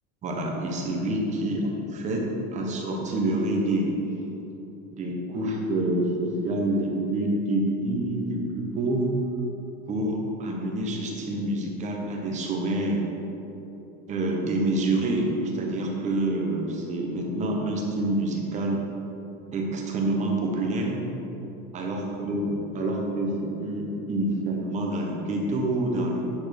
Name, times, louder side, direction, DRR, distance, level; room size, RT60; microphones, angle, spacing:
voice 1, 0.2-3.9 4.9-9.1 9.9-13.0 14.1-18.8 19.5-21.0 21.7-26.3, right 1 dB, 20° right, -1 dB, 1.1 m, -27 dB
9.8 x 4.6 x 5.9 m, 3.0 s
cardioid pair, 175°, 32 cm